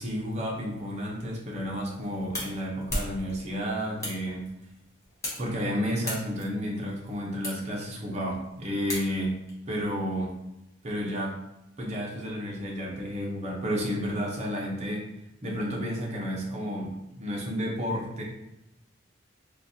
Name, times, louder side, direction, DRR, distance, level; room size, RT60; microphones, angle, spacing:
voice 1, 0.0-4.5 5.4-9.4 9.7-10.3 10.8-11.4 11.8-15.1 15.4-18.2, equal, 35° right, -2 dB, 0.7 m, -31 dB
sound 1, 1.7-9.5, left 1 dB, 15° left, 0.8 m, -39 dB
4.0 x 2.3 x 2.7 m, 0.89 s
head